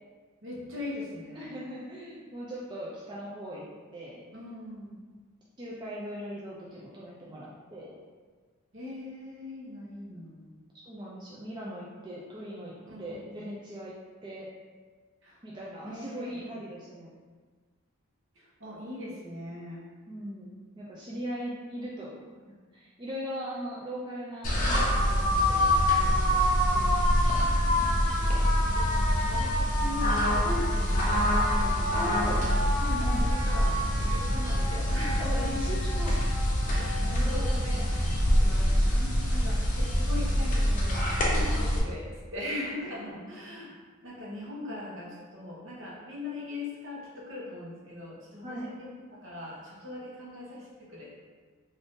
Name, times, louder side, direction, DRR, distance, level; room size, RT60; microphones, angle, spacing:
voice 1, 0.4-1.5 4.3-5.0 8.7-10.5 12.9-13.1 15.2-15.4 15.8-16.4 18.3-19.9 27.8-32.5 33.0-35.4 36.6-43.7 44.0-51.2, left 1 dB, 60° right, -5 dB, 0.9 m, -41 dB
voice 2, 1.4-4.2 5.6-8.0 10.8-12.7 13.0-14.5 15.4-17.1 20.1-22.1 22.7-27.2 31.9-32.5 32.8-33.3 35.2-36.2 37.0-37.6 41.3-41.8 42.8-42.9 48.4-48.7, equal, 20° right, -6 dB, 0.4 m, -39 dB
sound 1, 24.4-41.8, equal, 40° left, 0.5 m, -25 dB
2.6 x 2.5 x 3.5 m, 1.5 s
head